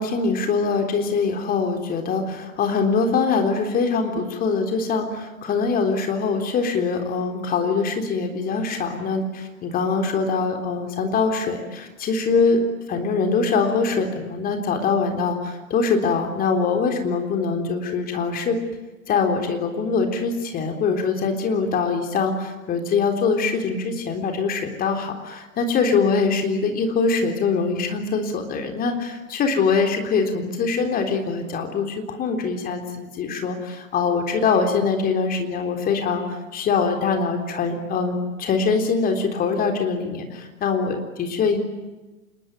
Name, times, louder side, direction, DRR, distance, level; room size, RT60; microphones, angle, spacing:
voice 1, 0.0-12.6 12.9-18.6 19.1-41.6, left 4 dB, 20° left, 5 dB, 3.7 m, -23 dB
27.5 x 22.0 x 9.2 m, 1.1 s
figure-of-eight pair, 110°, 41 cm